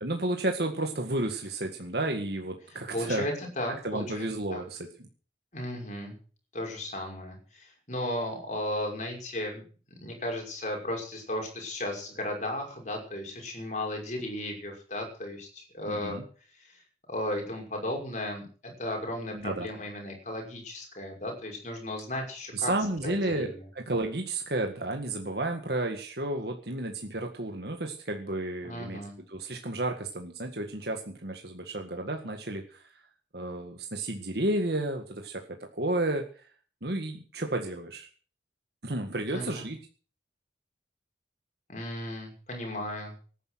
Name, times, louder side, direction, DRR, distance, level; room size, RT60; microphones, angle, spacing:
voice 1, 0.0-3.3 3.8-5.1 15.9-16.2 19.3-19.7 22.5-29.0 29.3-32.9 33.3-35.4 35.7-36.2 36.8-38.1 38.8-39.8, right 2 dB, 60° right, 3 dB, 1.9 m, -32 dB
voice 2, 2.7-4.6 5.5-6.1 6.5-9.6 10.0-16.2 16.6-16.8 17.1-22.7 23.0-23.6 28.6-29.1 39.3-39.7 41.7-43.1, left 1 dB, 40° left, 2 dB, 5.9 m, -35 dB
18.0 x 10.0 x 6.3 m, 0.41 s
head